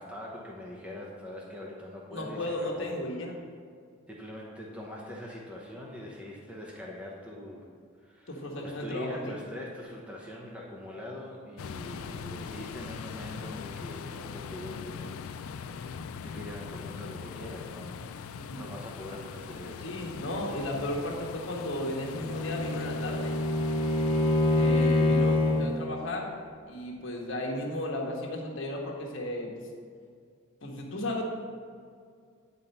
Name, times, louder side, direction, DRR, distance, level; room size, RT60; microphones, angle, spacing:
voice 1, 0.0-2.9 4.1-7.7 8.0-15.1 15.6-19.9, left 1 dB, 5° right, -3 dB, 0.9 m, -43 dB
voice 2, 2.1-3.4 8.3-9.3 18.4-18.6 19.8-23.3 24.6-26.4 26.7-29.5 30.6-31.2, left 1 dB, 60° left, -1 dB, 1.3 m, -34 dB
sound 1, 11.6-25.8, left 6 dB, 80° left, 0.4 m, -41 dB
Bowed string instrument, 21.9-25.8, left 2 dB, 25° left, 0.7 m, -26 dB
9.6 x 4.3 x 5.4 m, 2.2 s
head